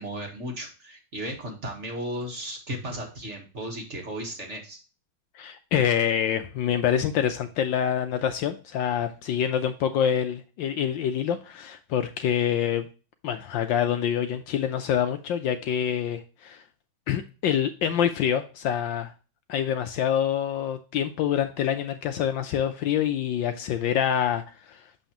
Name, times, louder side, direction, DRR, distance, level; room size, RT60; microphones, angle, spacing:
voice 1, 0.0-4.8, right 1 dB, 40° right, 1.4 m, -35 dB
voice 2, 5.3-12.9 13.2-16.6 17.1-19.1 19.5-24.9, left 9 dB, 75° left, 1.2 m, -26 dB
7.1 x 5.5 x 2.8 m
omnidirectional pair, 2.3 m